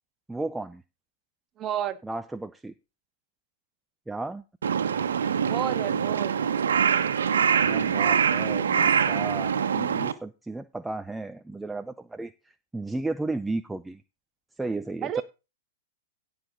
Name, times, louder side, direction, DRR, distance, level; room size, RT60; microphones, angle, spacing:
voice 1, 0.3-0.8 2.0-2.7 4.1-4.4 7.6-12.3 12.7-14.0 14.6-15.2, right 2 dB, 5° right, 9 dB, 0.6 m, -34 dB
voice 2, 1.6-2.0 5.4-6.3 15.0-15.2, right 10 dB, 30° right, 10 dB, 1.8 m, -30 dB
Crow, 4.6-10.1, right 7 dB, 80° right, 1.4 m, -24 dB
16.5 x 6.9 x 3.9 m, 0.28 s
hypercardioid pair, 120°, 0 cm